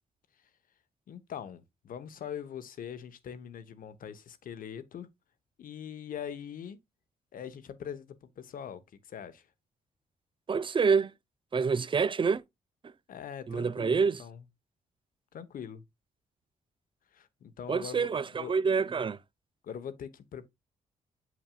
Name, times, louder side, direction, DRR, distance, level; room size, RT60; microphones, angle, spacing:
voice 1, 1.1-5.1 5.6-6.8 7.3-9.5 13.1-14.4 15.3-15.8 17.1-18.5 19.6-20.5, left 8 dB, 70° left, 1.0 m, -42 dB
voice 2, 10.5-11.1 11.5-12.4 13.5-14.2 17.7-19.2, right 5 dB, 35° right, 0.5 m, -27 dB
7.1 x 6.0 x 2.3 m
supercardioid pair, 60°, 15 cm